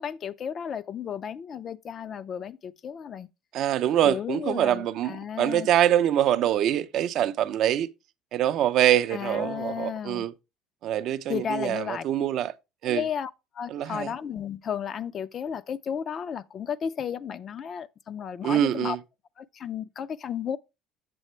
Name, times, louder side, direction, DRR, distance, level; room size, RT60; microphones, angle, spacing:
voice 1, 0.0-3.3 4.0-5.7 9.1-10.2 11.3-12.0 12.9-19.0 19.4-20.6, left 8 dB, 35° left, 0.4 m, -33 dB
voice 2, 3.5-7.9 8.3-10.3 10.8-12.5 12.8-13.0 13.7-14.1 18.4-19.0, right 11 dB, 55° right, 0.4 m, -24 dB
7.6 x 7.3 x 3.1 m
cardioid pair, 130°, 0 cm